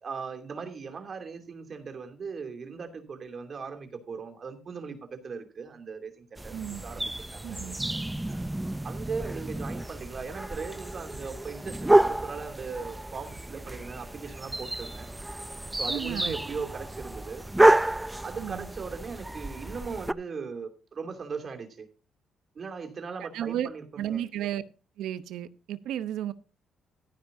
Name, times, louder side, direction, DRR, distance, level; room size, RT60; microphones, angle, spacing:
voice 1, 0.0-6.5 6.8-7.6 8.8-15.1 15.8-17.5 18.2-21.9 22.5-24.2, right 5 dB, 45° right, 5 dB, 2.8 m, -38 dB
sound 1, 6.4-20.1, right 1 dB, 10° right, 0.6 m, -29 dB
voice 2, 6.5-6.8 7.4-7.8 15.9-16.4 18.3-18.7 23.3-23.7 24.0-24.6 25.0-26.3, right 11 dB, 85° right, 13 dB, 0.8 m, -33 dB
14.5 x 10.5 x 2.7 m, 0.33 s
cardioid pair, 90°, 0 cm